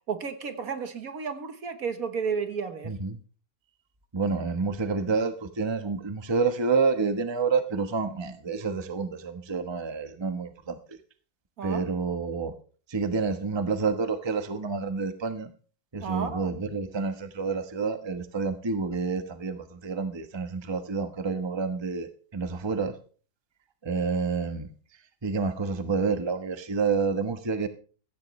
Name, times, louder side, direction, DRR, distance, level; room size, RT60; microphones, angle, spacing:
voice 1, 0.1-2.9 11.6-11.9 16.0-16.5, right 5 dB, 60° right, 1.6 m, -32 dB
voice 2, 2.8-3.2 4.1-11.0 11.6-12.5 12.9-15.5 15.9-22.9 23.8-24.7 25.2-27.7, right 4 dB, 20° right, 1.0 m, -28 dB
15.0 x 15.0 x 3.2 m
omnidirectional pair, 1.8 m